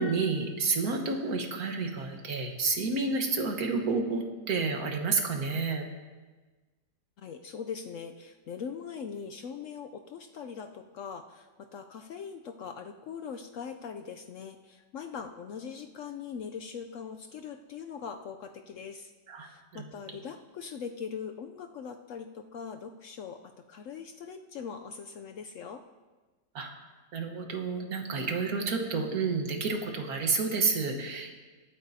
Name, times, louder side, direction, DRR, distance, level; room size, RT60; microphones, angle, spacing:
voice 1, 0.0-5.9 19.3-19.9 26.5-26.7 27.1-31.3, right 4 dB, 55° right, 3 dB, 1.6 m, -30 dB
voice 2, 7.2-19.1 19.4-25.8, left 6 dB, 80° left, 6 dB, 0.7 m, -41 dB
20.5 x 9.2 x 2.7 m, 1.3 s
omnidirectional pair, 1.9 m